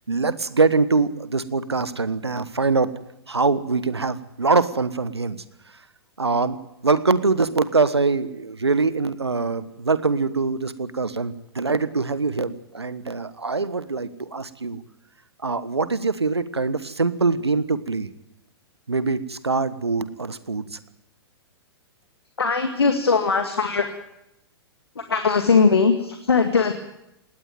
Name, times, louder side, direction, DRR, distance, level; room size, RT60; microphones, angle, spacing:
voice 1, 0.1-2.9 3.3-5.4 6.2-6.6 6.8-14.8 15.4-18.1 18.9-20.8, right 4 dB, 80° right, 15 dB, 1.4 m, -23 dB
voice 2, 22.4-23.9 25.0-26.7, left 5 dB, 70° left, 6 dB, 2.1 m, -20 dB
19.5 x 17.5 x 9.2 m, 0.87 s
figure-of-eight pair, 105°, 14 cm